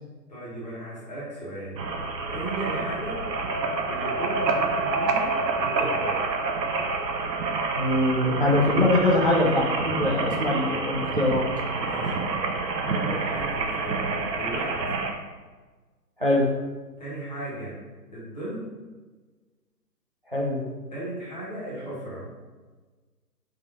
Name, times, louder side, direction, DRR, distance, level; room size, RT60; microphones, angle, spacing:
voice 1, 0.3-1.8 2.2-3.3 3.9-6.3 11.7-12.3 12.9-14.8 17.0-17.8 18.1-18.7 20.9-22.3, right 1 dB, 25° left, -8 dB, 0.9 m, -35 dB
sound 1, 1.8-15.1, right 3 dB, 85° right, 0.7 m, -28 dB
voice 2, 7.7-11.5 16.2-16.5 20.3-20.6, left 1 dB, 35° right, -4 dB, 0.4 m, -23 dB
3.6 x 3.0 x 2.9 m, 1.3 s
figure-of-eight pair, 155°, 49 cm